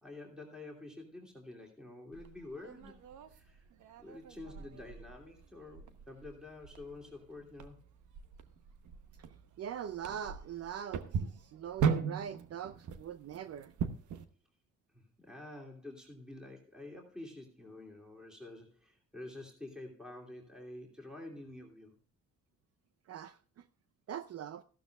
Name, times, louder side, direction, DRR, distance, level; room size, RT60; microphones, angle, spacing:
voice 1, 0.0-3.0 3.3-3.6 4.0-7.8 14.9-21.9, left 2 dB, ahead, 2.8 m, -49 dB
sound 1, 2.1-14.2, right 6 dB, 75° right, 1.0 m, -39 dB
voice 2, 9.6-13.7 23.1-23.7 24.1-24.6, right 9 dB, 55° right, 0.6 m, -42 dB
14.5 x 12.0 x 2.4 m
cardioid pair, 90°, 30 cm